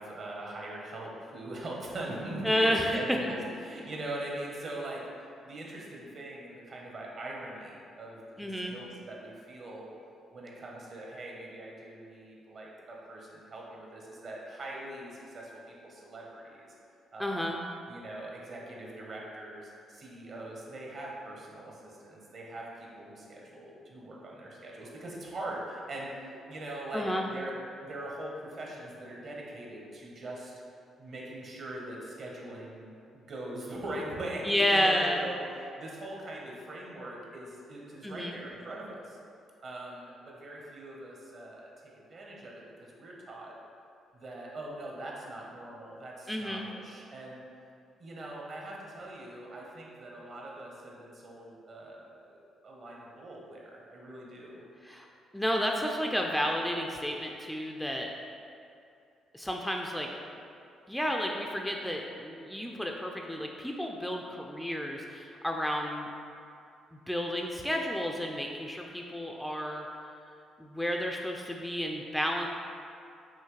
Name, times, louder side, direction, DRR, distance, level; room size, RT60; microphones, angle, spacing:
voice 1, 0.0-5.0 5.4-9.9 10.3-15.5 15.8-16.7 17.1-17.4 17.9-27.5 27.8-30.6 31.0-39.2 39.6-43.5 44.1-47.4 48.0-52.4 52.6-54.6, right 1 dB, 50° right, -2 dB, 0.9 m, -42 dB
voice 2, 2.4-3.0 8.4-8.8 17.2-17.6 26.9-27.3 34.4-35.2 38.0-38.4 46.3-46.7 54.8-55.1 55.3-58.1 59.3-60.1 60.9-66.1 66.9-69.9 70.6-72.5, equal, 5° left, 1 dB, 0.3 m, -31 dB
5.6 x 2.7 x 3.1 m, 2.6 s
cardioid pair, 90°, 0 cm